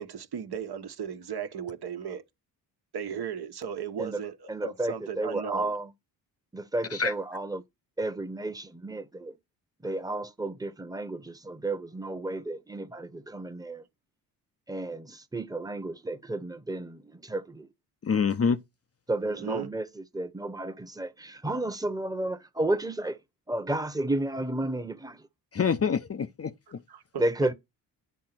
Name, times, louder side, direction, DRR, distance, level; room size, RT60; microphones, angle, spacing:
voice 1, 0.0-2.2 2.9-5.7 19.2-19.7 26.9-27.5, right 7 dB, 55° right, 1.4 m, -36 dB
voice 2, 4.5-5.9 6.5-7.6 8.0-9.3 9.8-13.8 14.7-17.7 19.1-23.2 23.5-25.2 27.2-27.5, right 2 dB, 10° right, 1.2 m, -32 dB
voice 3, 18.0-18.6 25.5-26.8, left 6 dB, 30° left, 0.7 m, -26 dB
9.6 x 3.8 x 6.0 m
supercardioid pair, 50°, 46 cm